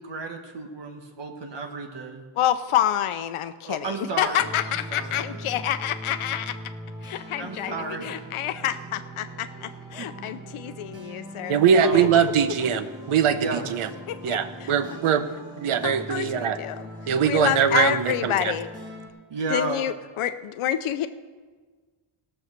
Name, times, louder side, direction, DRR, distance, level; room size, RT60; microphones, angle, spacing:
voice 1, 0.0-2.2 3.7-5.4 7.4-8.1 10.0-10.3 11.8-12.1 13.3-13.7 19.3-19.9, right 3 dB, 60° right, 4 dB, 1.3 m, -33 dB
voice 2, 2.4-6.5 7.0-12.1 14.1-15.0 15.8-16.8 17.2-18.7 19.5-21.1, left 11 dB, 85° left, 11 dB, 0.6 m, -28 dB
sound 1, 4.4-19.1, equal, 10° right, 1.7 m, -40 dB
voice 3, 11.5-13.9 14.2-15.3 15.6-16.6 17.1-18.5, right 8 dB, 90° right, 11 dB, 0.9 m, -22 dB
17.0 x 6.4 x 6.6 m, 1.4 s
wide cardioid pair, 160°, 49 cm